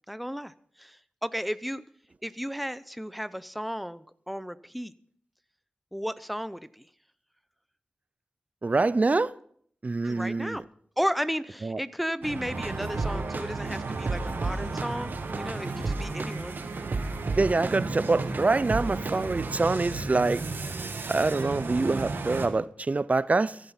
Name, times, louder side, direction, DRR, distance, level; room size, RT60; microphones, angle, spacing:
voice 1, 0.1-0.5 0.8-1.8 2.2-4.9 5.9-6.9 10.0-10.6 11.0-16.6, equal, ahead, 0.7 m, -34 dB
voice 2, 8.6-9.3 9.8-10.6 11.6-11.8 17.4-20.4 21.1-23.6, right 3 dB, 45° right, 0.6 m, -25 dB
sound 1, 12.2-22.5, right 3 dB, 85° right, 1.9 m, -35 dB
sound 2, 12.5-19.7, right 3 dB, 60° right, 1.6 m, -34 dB
15.0 x 11.5 x 5.8 m
cardioid pair, 55°, 4 cm